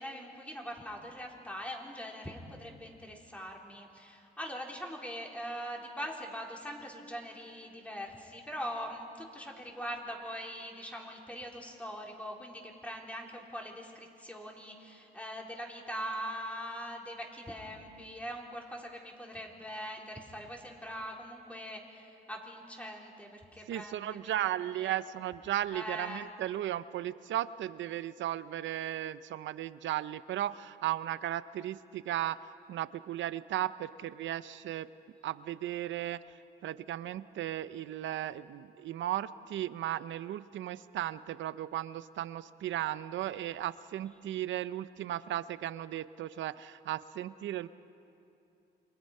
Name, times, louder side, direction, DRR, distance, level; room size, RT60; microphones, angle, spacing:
voice 1, 0.0-24.4 24.8-25.0 25.7-26.3, equal, 5° left, 0 dB, 3.8 m, -42 dB
voice 2, 23.7-34.9 35.2-47.7, right 12 dB, 70° right, 15 dB, 0.7 m, -36 dB
28.5 x 23.0 x 5.5 m, 2.8 s
cardioid pair, 90°, 20 cm